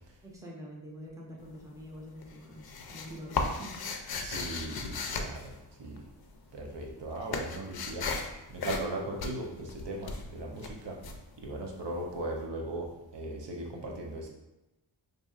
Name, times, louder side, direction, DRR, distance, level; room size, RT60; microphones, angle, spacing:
voice 1, 0.2-3.8, equal, 5° right, -3 dB, 0.7 m, -46 dB
sound 1, 1.4-1.9 2.2-6.3 6.5-12.1, left 4 dB, 55° left, 0.5 m, -36 dB
voice 2, 4.2-5.5 5.8-6.0 6.5-8.2 8.5-11.0 11.4-14.3, right 1 dB, 70° right, 0 dB, 0.7 m, -38 dB
5.0 x 2.7 x 2.4 m, 0.98 s
wide cardioid pair, 120°, 44 cm